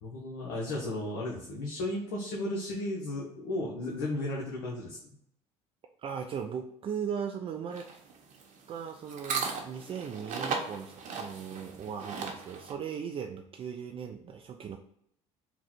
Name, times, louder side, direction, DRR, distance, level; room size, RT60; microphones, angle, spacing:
voice 1, 0.0-5.0, left 1 dB, 75° left, -3 dB, 0.8 m, -34 dB
voice 2, 6.0-7.9 8.7-14.8, right 7 dB, 35° right, 4 dB, 0.4 m, -38 dB
sound 1, 7.7-12.7, right 5 dB, 55° right, 0.9 m, -37 dB
3.8 x 2.2 x 4.3 m, 0.71 s
hypercardioid pair, 70°, 16 cm